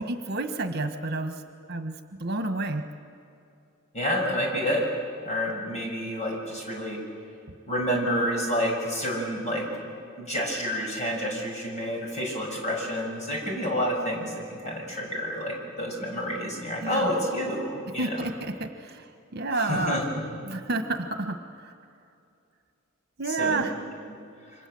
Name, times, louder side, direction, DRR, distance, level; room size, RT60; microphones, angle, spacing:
voice 1, 0.0-1.3 1.7-1.9 2.2-2.8 16.8-17.1 18.0-19.0 19.3-20.0 20.5-21.4 23.2-23.7, right 2 dB, 50° right, 7 dB, 1.5 m, -29 dB
voice 2, 3.9-4.9 5.2-7.0 7.6-9.7 10.2-18.2 19.5-20.3 23.3-23.6, equal, 35° left, -1 dB, 6.6 m, -29 dB
28.5 x 25.0 x 7.9 m, 2.6 s
head